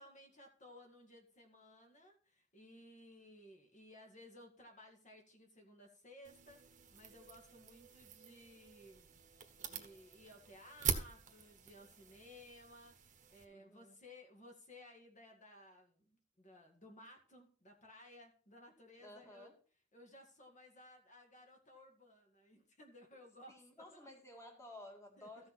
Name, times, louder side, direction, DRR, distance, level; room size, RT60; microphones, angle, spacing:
voice 1, 0.0-9.2 9.6-19.5 19.9-23.5 23.9-24.1 25.2-25.5, left 1 dB, 40° left, 1 dB, 2.1 m, -59 dB
sound 1, 6.2-13.5, right 6 dB, 40° right, 1.3 m, -45 dB
voice 2, 13.5-13.9 19.0-19.6 23.5-25.5, left 1 dB, 15° left, 1 dB, 2.2 m, -55 dB
14.5 x 6.3 x 4.3 m, 0.39 s
head